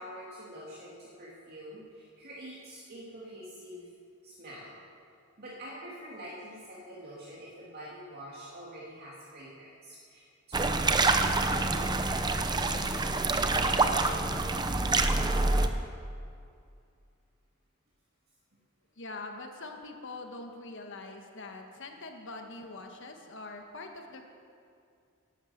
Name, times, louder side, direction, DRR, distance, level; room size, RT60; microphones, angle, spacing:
voice 1, 0.0-3.9 4.2-4.8 5.4-14.3, equal, 45° right, -6 dB, 2.4 m, -46 dB
sound 1, 10.5-15.7, right 3 dB, 20° right, 0.7 m, -26 dB
voice 2, 19.0-24.2, left 2 dB, 60° left, 3 dB, 1.5 m, -43 dB
11.5 x 11.0 x 8.0 m, 2.4 s
head